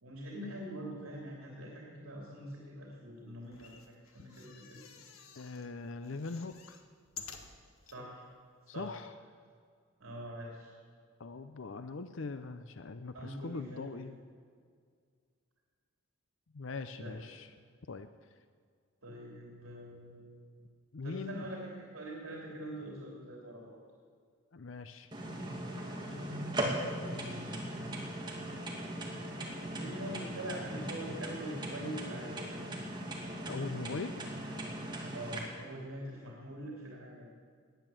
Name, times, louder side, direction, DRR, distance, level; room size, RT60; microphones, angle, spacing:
voice 1, 0.0-3.7 4.1-4.8 7.9-8.2 8.7-8.9 10.0-10.7 13.1-14.0 17.0-17.3 19.0-20.4 21.0-23.8 26.7-27.7 29.7-32.4 35.1-37.3, right 1 dB, 80° right, -2 dB, 3.2 m, -44 dB
sound 1, 3.4-5.7 6.0-8.0 8.6-8.7 8.9-9.0, left 6 dB, 80° left, 1.5 m, -51 dB
voice 2, 5.3-6.8 8.7-9.1 11.2-14.1 16.5-17.5 17.9-18.3 20.9-21.5 24.5-25.1 33.5-34.1, left 3 dB, 60° left, 10 dB, 0.6 m, -41 dB
sound 2, 25.1-35.4, right 1 dB, 20° right, 2.2 m, -39 dB
18.0 x 10.5 x 7.7 m, 2.1 s
head